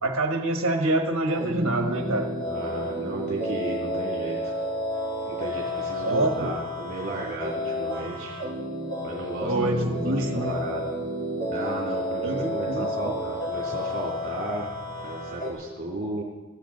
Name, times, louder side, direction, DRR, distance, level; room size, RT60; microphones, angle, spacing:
voice 1, 0.0-2.3 6.0-6.5 9.4-10.6 12.2-13.1, right 2 dB, 60° right, 3 dB, 1.3 m, -26 dB
sound 1, 1.3-15.5, equal, 20° left, 6.5 m, -31 dB
voice 2, 2.5-4.5 5.3-8.3 9.0-10.9 11.5-14.7 15.0-16.2, right 2 dB, 45° right, -3 dB, 2.6 m, -34 dB
21.5 x 13.5 x 3.9 m, 1.2 s
head